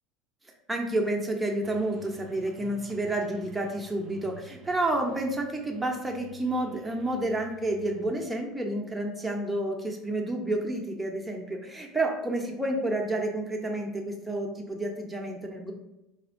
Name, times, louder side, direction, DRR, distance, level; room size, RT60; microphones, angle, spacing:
voice 1, 0.7-15.7, right 1 dB, 10° right, 0 dB, 0.8 m, -30 dB
sound 1, 1.6-8.1, right 8 dB, 50° right, 0.4 m, -51 dB
4.3 x 2.7 x 2.6 m, 0.92 s
supercardioid pair, 95°, 0 cm